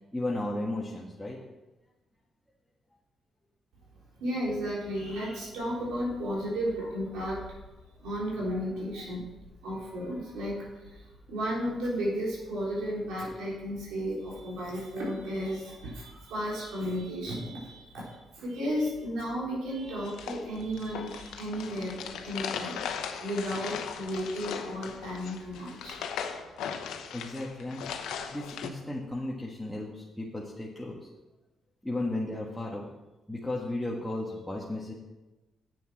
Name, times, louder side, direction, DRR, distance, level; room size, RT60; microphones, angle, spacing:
voice 1, 0.1-1.4 27.1-28.0 28.3-31.0 31.8-32.8 33.3-34.9, left 2 dB, 5° left, -4 dB, 1.5 m, -34 dB
voice 2, 4.2-7.5 8.0-9.2 9.6-22.8 23.2-26.0, equal, 90° right, -5 dB, 3.7 m, -33 dB
sound 1, 20.0-28.7, left 7 dB, 90° left, 0.9 m, -38 dB
8.5 x 6.9 x 5.9 m, 1.1 s
cardioid pair, 80°, 0 cm